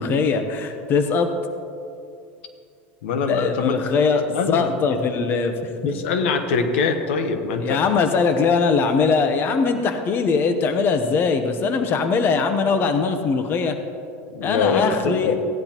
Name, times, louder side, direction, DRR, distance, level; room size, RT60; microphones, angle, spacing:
voice 1, 0.0-1.3 3.3-5.5 7.6-13.8 14.4-15.3, left 5 dB, 35° left, 7 dB, 0.8 m, -21 dB
voice 2, 3.0-3.8 4.3-5.0 5.8-7.8 14.3-15.4, left 4 dB, 85° left, 7 dB, 1.1 m, -23 dB
16.0 x 10.5 x 3.0 m, 2.4 s
supercardioid pair, 135°, 6 cm